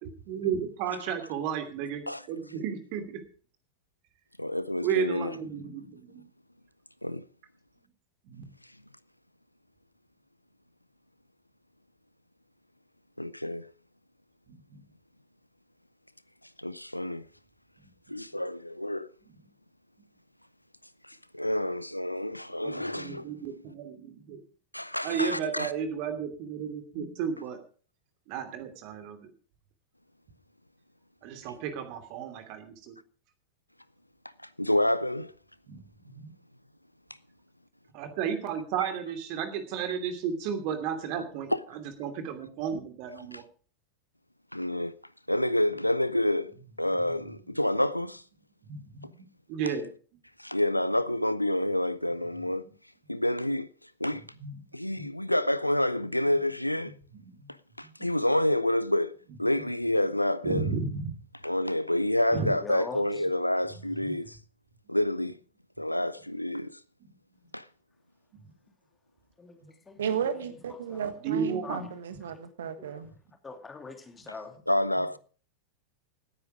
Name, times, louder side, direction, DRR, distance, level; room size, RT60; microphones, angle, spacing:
voice 1, 0.0-3.2 4.8-6.2 8.2-8.5 14.5-14.8 19.3-19.4 22.6-24.4 25.0-27.6 28.3-29.3 31.2-32.9 35.7-36.3 37.9-43.4 46.8-47.2 48.6-49.9 54.1-54.6 54.9-55.1 57.2-57.5 58.0-58.1 60.4-61.2 62.3-62.5 63.7-63.8 69.6-69.7 71.2-71.9, right 7 dB, 45° right, 2.9 m, -34 dB
voice 2, 4.4-5.3 7.0-7.2 13.2-13.6 16.6-17.2 18.1-19.1 21.3-23.3 24.7-25.7 34.6-35.3 41.5-41.6 44.5-44.9 45.3-46.5 46.8-48.2 50.4-52.6 53.1-53.7 54.0-54.2 54.7-56.9 57.8-60.7 61.4-64.4 64.9-65.4 65.8-66.7 67.5-67.6 74.7-75.2, left 1 dB, 90° left, 0.6 m, -28 dB
voice 3, 62.6-63.3 69.4-70.2 70.7-71.1 71.6-71.9 72.8-73.0 73.4-74.6, left 4 dB, 15° left, 2.7 m, -43 dB
voice 4, 70.0-73.1, right 7 dB, 65° right, 1.4 m, -34 dB
17.5 x 9.8 x 5.0 m
figure-of-eight pair, 90°, 0 cm